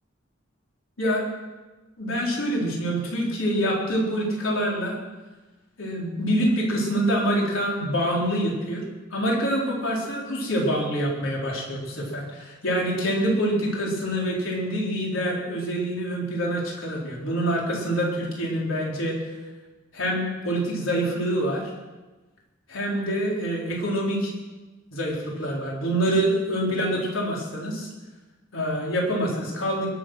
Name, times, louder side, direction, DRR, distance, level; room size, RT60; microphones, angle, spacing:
voice 1, 2.0-5.0 5.8-8.8 9.1-19.2 19.9-21.7 22.7-24.3 24.9-27.9 28.5-29.9, equal, 90° left, -3 dB, 3.9 m, -26 dB
21.0 x 7.7 x 6.3 m, 1.2 s
head